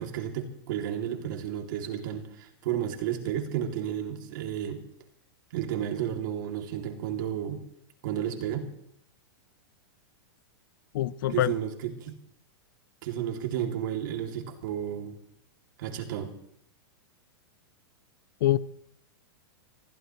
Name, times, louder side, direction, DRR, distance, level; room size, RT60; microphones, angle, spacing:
voice 1, 0.0-4.8 5.5-7.6 8.0-8.7 11.3-12.2 13.0-15.2 15.8-16.3, right 10 dB, 55° right, 4 dB, 2.6 m, -32 dB
voice 2, 10.9-11.5 18.4-18.6, left 13 dB, 55° left, 18 dB, 0.6 m, -24 dB
27.0 x 15.5 x 3.1 m, 0.71 s
supercardioid pair, 165°, 13 cm